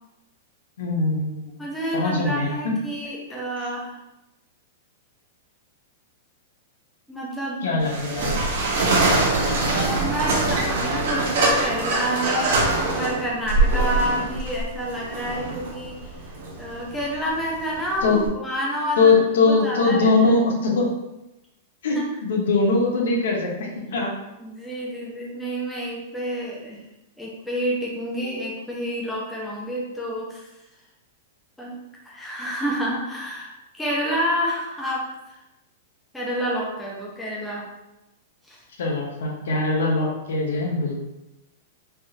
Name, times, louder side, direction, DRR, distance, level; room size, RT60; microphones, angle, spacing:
voice 1, 0.8-1.5 1.9-2.5 7.6-8.3 18.0-18.2 19.0-20.9 21.8-22.0 22.2-24.1 38.8-41.0, left 3 dB, 80° left, 0 dB, 0.8 m, -21 dB
voice 2, 1.6-4.0 7.1-7.8 9.6-12.6 13.0-20.4 21.9-22.0 24.4-26.8 27.2-30.5 31.6-31.8 32.0-35.4 36.1-37.6 38.5-38.6, equal, 5° left, -5 dB, 0.6 m, -29 dB
sound 1, 7.8-18.3, right 2 dB, 65° right, 0.8 m, -23 dB
3.4 x 2.4 x 2.7 m, 0.93 s
supercardioid pair, 160°, 0 cm